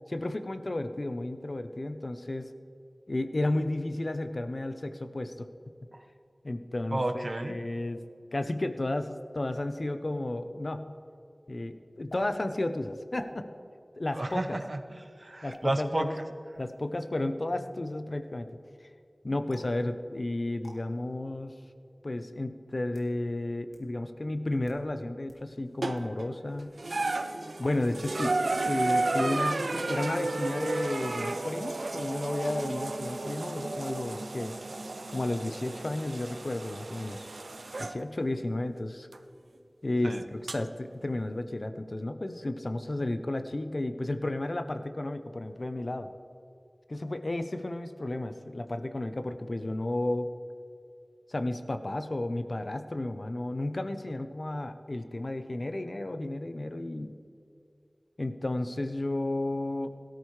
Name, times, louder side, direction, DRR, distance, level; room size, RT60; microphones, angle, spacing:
voice 1, 0.1-2.5 3.1-5.5 6.4-8.0 8.3-11.0 11.5-13.5 14.0-14.4 15.4-16.2 16.6-18.5 19.2-21.5 22.0-26.8 27.6-34.5 35.1-37.3 37.8-39.1 39.8-46.1 46.9-50.3 51.3-57.2 58.2-59.9, left 1 dB, 60° left, 9 dB, 0.8 m, -33 dB
voice 2, 6.9-7.6 14.1-16.1 40.0-40.2, right 1 dB, 50° right, 6 dB, 1.0 m, -32 dB
sound 1, 12.1-12.2 13.1-13.4 14.3-14.5 15.5-15.6 16.5-16.8 19.5-19.8 20.6-20.8 21.7-21.8 22.7-23.1 23.7-23.8 24.5-24.8 25.3-25.4 25.9-26.1 27.6-28.0 28.3-28.7, left 1 dB, 85° left, 1.9 m, -49 dB
sound 2, 25.8-26.3 26.8-38.0 39.1-39.2 40.5-40.6, right 2 dB, 85° right, 0.5 m, -33 dB
17.0 x 13.0 x 3.3 m, 2.5 s
wide cardioid pair, 40°, 0 cm